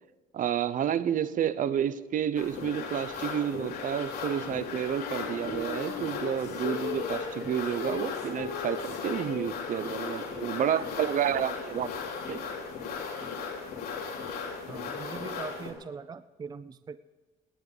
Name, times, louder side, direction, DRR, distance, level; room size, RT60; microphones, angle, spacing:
voice 1, 0.3-11.9 12.3-12.4, right 9 dB, 50° right, 15 dB, 0.9 m, -30 dB
sound 1, 2.4-15.7, left 5 dB, 65° left, 3.6 m, -37 dB
Female singing, 5.0-11.5, left 6 dB, 85° left, 2.5 m, -40 dB
voice 2, 14.7-17.0, right 5 dB, 25° right, 14 dB, 0.5 m, -41 dB
18.5 x 11.0 x 5.1 m, 1.4 s
cardioid pair, 110°, 17 cm